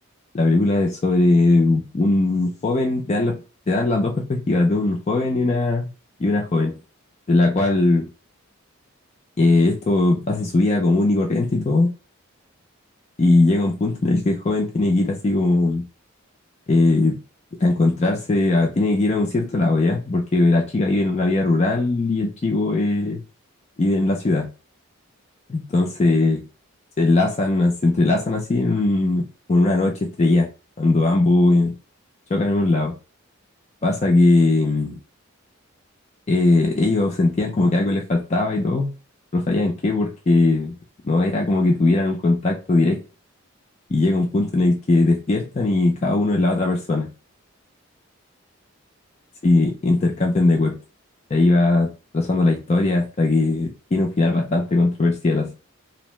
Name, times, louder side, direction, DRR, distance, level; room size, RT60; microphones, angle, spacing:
voice 1, 0.3-3.4 3.7-5.9 6.2-6.8 7.3-8.1 9.4-11.9 13.2-15.8 16.7-17.2 17.6-23.2 23.8-24.5 25.5-26.5 27.0-30.5 30.8-31.7 32.3-32.9 33.8-35.0 36.3-38.9 39.3-40.8 41.0-43.0 43.9-47.1 49.4-50.8 51.3-55.5, left 2 dB, 30° left, 0 dB, 0.3 m, -19 dB
2.7 x 2.0 x 3.1 m, 0.33 s
head